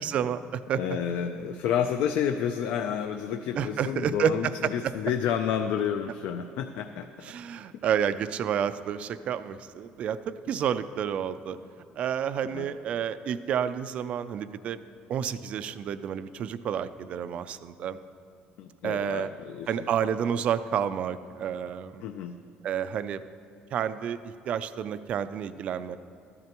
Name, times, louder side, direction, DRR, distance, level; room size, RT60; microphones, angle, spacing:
voice 1, 0.0-0.8 3.5-4.9 7.2-11.6 12.0-14.8 15.1-18.0 18.8-19.3 19.7-22.0 22.6-23.2 23.7-26.0, right 8 dB, 40° right, 13 dB, 0.3 m, -30 dB
voice 2, 0.8-7.1 12.5-12.7 18.6-19.7 22.0-22.3, left 8 dB, 65° left, 7 dB, 0.4 m, -30 dB
13.5 x 11.0 x 2.9 m, 2.7 s
cardioid pair, 180°, 3 cm